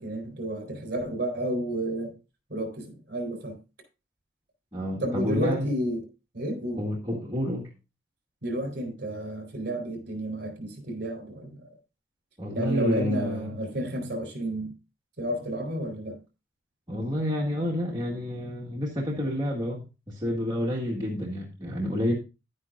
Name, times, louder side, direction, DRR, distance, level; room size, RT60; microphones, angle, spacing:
voice 1, 0.0-2.1 2.5-3.6 5.0-6.0 6.3-6.8 8.4-11.6 12.5-14.7 15.2-16.2, right 1 dB, 55° right, 4.0 m, -31 dB
voice 2, 4.7-5.7 6.8-7.7 12.4-13.5 16.9-22.1, equal, 20° right, 1.8 m, -29 dB
11.0 x 9.5 x 2.5 m
head